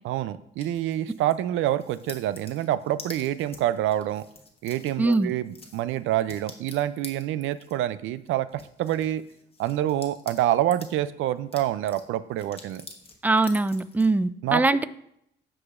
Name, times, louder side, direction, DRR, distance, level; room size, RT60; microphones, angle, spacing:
voice 1, 0.0-4.2 4.6-9.2 9.6-12.8 14.4-14.6, right 13 dB, 80° right, 15 dB, 0.4 m, -27 dB
sound 1, 0.6-1.4 1.8-10.9 11.3-14.1, left 3 dB, 30° left, 1.2 m, -47 dB
voice 2, 5.0-5.3 13.2-14.8, right 2 dB, 10° right, 15 dB, 0.3 m, -22 dB
13.0 x 4.9 x 2.5 m, 0.75 s
cardioid pair, 90°, 20 cm